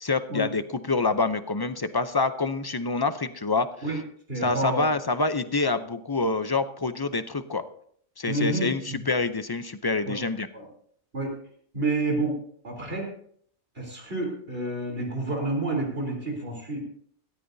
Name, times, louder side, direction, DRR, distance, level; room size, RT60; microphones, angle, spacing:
voice 1, 0.0-4.0 4.4-7.6 8.2-10.5, left 3 dB, 30° left, 11 dB, 0.5 m, -27 dB
voice 2, 4.3-4.8 8.3-9.0 10.1-10.2 10.5-10.6 11.1-11.3 11.7-12.4 12.6-13.1 13.8-16.8, right 2 dB, 55° right, 1 dB, 3.9 m, -29 dB
17.5 x 13.5 x 2.7 m, 0.62 s
omnidirectional pair, 1.2 m